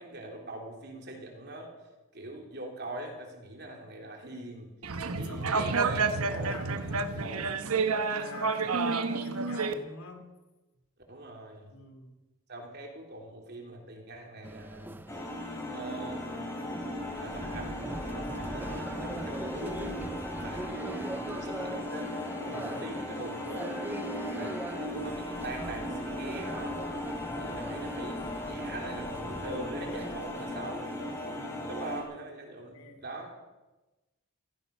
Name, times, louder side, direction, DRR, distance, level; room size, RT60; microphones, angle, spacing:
voice 1, 0.0-1.7 2.1-4.7 5.1-7.5 11.1-11.7 12.5-15.1 15.7-16.5 17.2-17.7 18.1-19.8 20.4-22.1 22.5-23.8 24.3-26.8 27.4-30.9 31.7-33.3, right 2 dB, 50° right, 1 dB, 3.3 m, -42 dB
sound 1, 4.8-9.7, right 4 dB, 90° right, 1.1 m, -29 dB
voice 2, 5.1-5.8 6.2-7.7 8.1-10.3 11.7-12.1 22.5-22.9 24.4-24.6 27.2-27.6 30.3-30.8 31.3-31.7 32.7-33.0, left 1 dB, 85° left, 5 dB, 2.9 m, -47 dB
sound 2, 14.4-31.2, right 1 dB, 10° right, 0.5 m, -42 dB
sound 3, 15.1-32.0, left 1 dB, 15° left, 3.2 m, -37 dB
16.5 x 15.5 x 5.4 m, 1.1 s
head